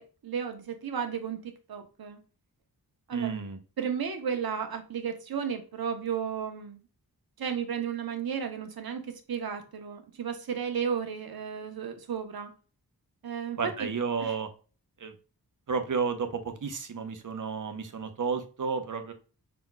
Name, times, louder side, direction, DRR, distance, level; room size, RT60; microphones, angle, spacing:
voice 1, 0.0-2.2 3.1-3.3 3.8-6.8 7.4-12.5 13.2-13.9 14.2-14.3, right 7 dB, 75° right, 6 dB, 1.0 m, -33 dB
voice 2, 3.1-3.6 13.6-14.5 15.0-15.1 15.7-19.1, right 5 dB, 55° right, 7 dB, 0.8 m, -32 dB
5.8 x 3.9 x 2.3 m, 0.36 s
wide cardioid pair, 90°, 37 cm